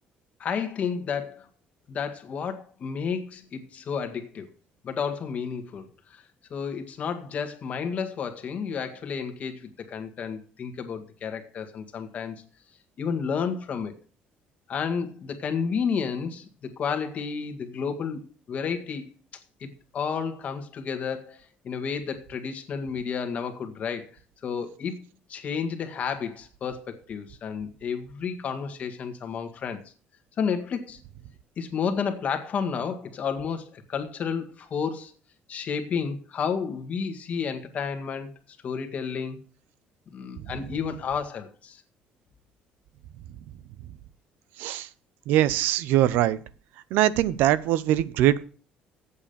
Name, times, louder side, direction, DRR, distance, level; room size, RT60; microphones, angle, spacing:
voice 1, 0.4-1.5 1.9-4.5 4.8-6.2 6.5-12.4 13.0-13.9 14.7-19.0 19.6-21.4 21.6-25.0 25.3-29.8 30.4-31.0 31.6-35.1 35.5-38.3 38.6-39.4 40.1-41.8, left 6 dB, 45° left, 1.8 m, -31 dB
voice 2, 45.3-46.4 46.9-48.4, right 13 dB, 85° right, 0.7 m, -22 dB
8.5 x 7.3 x 6.9 m
cardioid pair, 125°, 3 cm